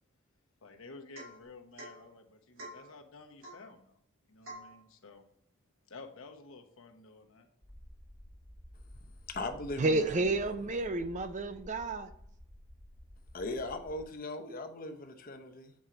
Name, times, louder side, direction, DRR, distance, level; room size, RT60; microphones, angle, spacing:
voice 1, 0.6-4.0 4.3-5.3 5.9-7.5, left 3 dB, 80° left, 1.0 m, -52 dB
Domestic sounds home sounds / Chink clink / Drip, 1.1-1.4 1.8-2.0 2.6-2.9 3.4-3.7 4.4-4.7, right 1 dB, 80° right, 2.3 m, -47 dB
sound 1, 7.6-14.0, equal, 10° left, 0.9 m, -52 dB
voice 2, 9.3-10.0 13.3-15.7, left 2 dB, 45° left, 0.8 m, -39 dB
voice 3, 9.8-12.1, right 2 dB, 35° right, 0.4 m, -30 dB
7.4 x 4.5 x 3.8 m
head